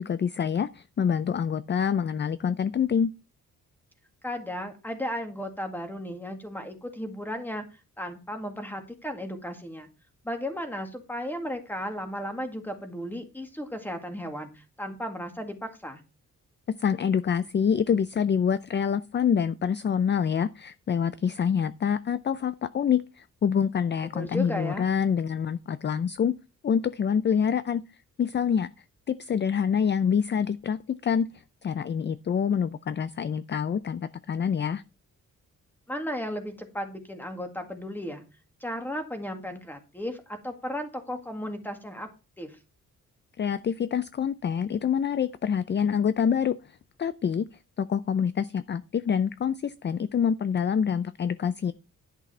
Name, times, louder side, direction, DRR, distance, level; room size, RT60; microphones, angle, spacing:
voice 1, 0.0-3.1 16.7-26.3 26.6-27.8 28.2-28.7 29.1-31.3 31.6-34.8 43.4-46.6 47.0-47.5 47.8-51.7, left 7 dB, 35° left, 0.5 m, -26 dB
voice 2, 4.2-7.7 8.0-9.9 10.2-16.0 24.1-24.9 35.9-38.2 38.6-42.1 42.4-42.6, equal, 5° left, 2.0 m, -35 dB
11.0 x 6.2 x 4.3 m
wide cardioid pair, 125°, 31 cm